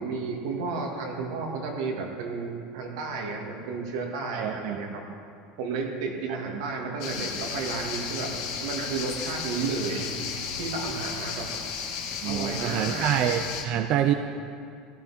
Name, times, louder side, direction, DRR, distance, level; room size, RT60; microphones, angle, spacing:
voice 1, 0.0-5.0 5.6-8.3 8.6-11.5 12.2-13.1, right 4 dB, 90° right, 0 dB, 2.3 m, -32 dB
voice 2, 4.3-4.8 12.2-14.1, right 10 dB, 45° right, 7 dB, 0.5 m, -26 dB
sound 1, 7.0-13.6, left 6 dB, 75° left, 1.8 m, -34 dB
16.0 x 12.5 x 4.3 m, 2.4 s
cardioid pair, 160°, 2 cm